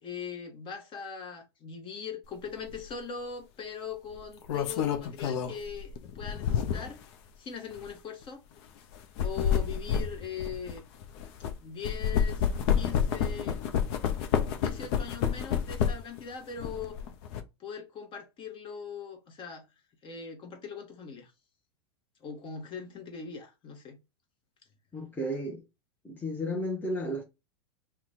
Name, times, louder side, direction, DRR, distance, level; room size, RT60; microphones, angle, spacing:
voice 1, 0.0-7.0 7.4-8.4 9.2-10.8 11.6-13.6 14.6-17.0 17.6-19.7 20.0-21.3 22.2-24.0, left 6 dB, 35° left, 1.0 m, -41 dB
sound 1, 2.7-2.9 4.2-7.0 7.7-7.9 8.9-11.5 11.8-16.2 16.6-17.4, left 8 dB, 60° left, 0.6 m, -29 dB
voice 2, 24.9-25.6 26.0-27.2, equal, 10° left, 0.8 m, -33 dB
2.9 x 2.2 x 3.8 m
hypercardioid pair, 100°, 15 cm